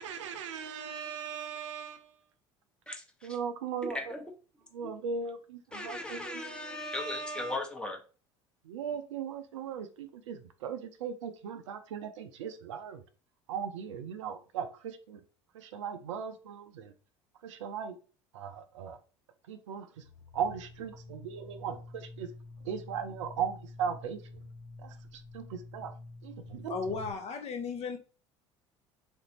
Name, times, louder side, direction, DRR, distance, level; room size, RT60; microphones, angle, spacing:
voice 1, 0.0-2.1 3.2-4.2 4.7-6.8 8.6-13.0 13.5-15.2 15.5-16.9 17.4-18.0 18.3-19.0 19.5-20.0 20.3-22.3 22.6-24.2 24.8-25.9 26.2-26.8, right 7 dB, 75° right, 0.4 m, -38 dB
voice 2, 2.9-3.3 3.8-4.2 4.8-4.9 5.7-8.0, left 1 dB, 5° left, 0.9 m, -37 dB
sound 1, 20.0-27.1, left 2 dB, 85° left, 0.6 m, -48 dB
voice 3, 26.7-28.0, left 5 dB, 40° left, 0.6 m, -35 dB
3.2 x 2.6 x 2.9 m
hypercardioid pair, 65°, 16 cm